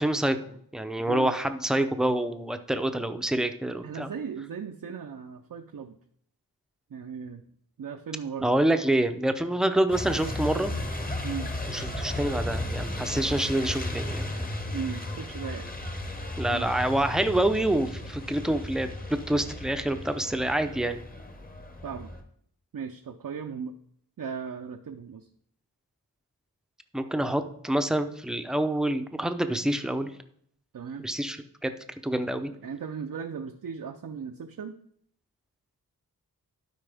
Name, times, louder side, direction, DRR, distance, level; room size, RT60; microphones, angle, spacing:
voice 1, 0.0-4.1 8.4-10.7 11.7-14.3 16.4-21.0 26.9-30.1 31.0-31.4 31.6-31.7 32.0-32.5, right 1 dB, ahead, 8 dB, 0.6 m, -27 dB
voice 2, 3.8-6.0 6.9-7.4 7.8-8.5 11.2-11.5 13.9-14.0 14.7-15.7 16.5-16.7 21.8-22.1 22.7-23.7 24.2-25.3 30.7-31.1 32.6-34.8, right 6 dB, 60° right, 5 dB, 0.6 m, -37 dB
Truck, 9.9-22.2, left 1 dB, 25° left, 1.1 m, -35 dB
12.0 x 4.7 x 3.5 m, 0.66 s
wide cardioid pair, 60°, 38 cm